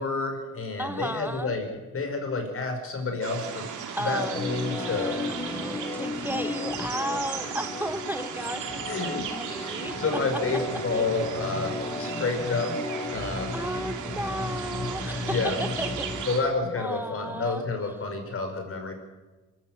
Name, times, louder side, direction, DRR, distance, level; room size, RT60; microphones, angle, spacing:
voice 1, 0.0-1.7 1.9-3.7 4.1-5.5 8.9-9.2 9.6-12.7 13.1-13.6 15.2-15.6 16.3-18.9, left 3 dB, 45° left, 5 dB, 5.4 m, -29 dB
voice 2, 0.8-1.5 4.0-10.0 10.9-11.0 13.5-16.1 16.8-17.6, right 1 dB, 5° right, 11 dB, 0.7 m, -34 dB
sound 1, 3.2-16.4, right 7 dB, 80° right, 2.8 m, -36 dB
Organ, 4.1-16.3, left 3 dB, 20° left, 1.3 m, -35 dB
24.5 x 14.0 x 7.8 m, 1.2 s
cardioid pair, 90°, 30 cm